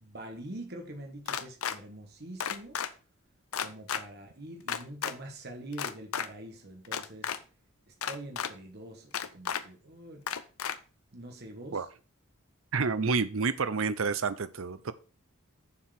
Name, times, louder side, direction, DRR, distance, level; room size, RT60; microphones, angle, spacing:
voice 1, 0.0-2.8 3.6-7.3 7.9-10.3 11.1-11.9, right 1 dB, 45° right, 1.4 m, -45 dB
sound 1, 1.3-1.8 2.4-2.9 3.5-4.0 4.7-5.1 5.7-6.3 6.8-7.4 8.0-8.5 9.1-9.6 10.3-10.7, left 8 dB, 75° left, 0.7 m, -32 dB
voice 2, 12.7-14.9, right 4 dB, 65° right, 0.7 m, -29 dB
7.1 x 4.6 x 6.5 m
head